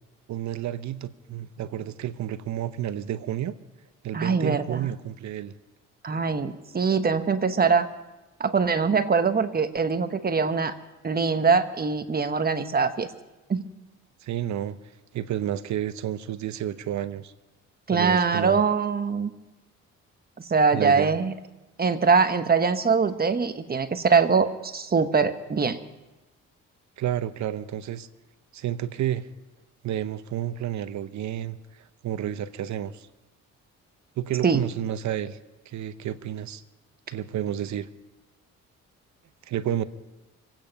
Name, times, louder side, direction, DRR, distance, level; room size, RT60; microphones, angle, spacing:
voice 1, 0.3-3.5 4.0-5.5 14.2-14.8 15.1-17.3 17.9-18.6 20.7-21.1 27.0-28.1 28.5-29.3 29.8-33.1 34.2-35.4 35.7-36.6 37.1-37.9 39.5-39.8, right 11 dB, 70° right, 13 dB, 0.9 m, -30 dB
voice 2, 4.1-4.8 6.0-7.9 8.4-10.7 11.0-13.1 13.5-13.6 17.9-19.3 20.5-21.3 21.8-25.8 34.4-34.6, right 5 dB, 30° right, 9 dB, 1.1 m, -23 dB
26.0 x 9.0 x 5.3 m, 1.1 s
cardioid pair, 90°, 30 cm